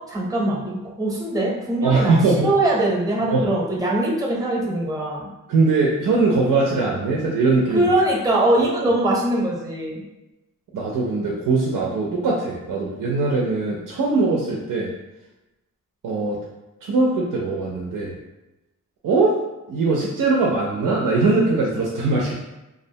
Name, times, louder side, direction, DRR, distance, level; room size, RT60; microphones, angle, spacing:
voice 1, 0.1-5.3 7.7-10.0, right 1 dB, 10° right, -3 dB, 0.6 m, -22 dB
voice 2, 1.8-2.5 3.3-3.4 5.5-7.9 8.6-8.7 10.7-14.9 16.0-16.4 16.8-18.2 19.0-19.3 19.7-22.3, right 3 dB, 90° right, -3 dB, 0.5 m, -21 dB
2.5 x 2.1 x 2.7 m, 1.0 s
wide cardioid pair, 90°, 32 cm